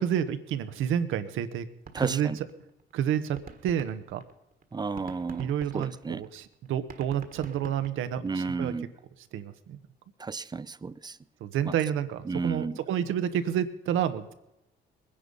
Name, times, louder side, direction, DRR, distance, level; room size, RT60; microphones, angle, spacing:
voice 1, 0.0-1.7 2.0-2.3 2.9-3.4 3.6-4.2 5.4-8.7 9.3-9.8 11.4-14.3, right 9 dB, 85° right, 1.1 m, -29 dB
sound 1, 0.9-1.0 1.2-1.3 1.6-2.9 3.2-8.5, right 5 dB, 45° right, 1.5 m, -46 dB
voice 2, 1.9-2.4 4.7-6.2 8.2-8.9 10.2-11.2 11.7-11.8 12.3-12.8, right 4 dB, 20° right, 0.5 m, -32 dB
21.0 x 10.0 x 5.4 m
cardioid pair, 90°, 20 cm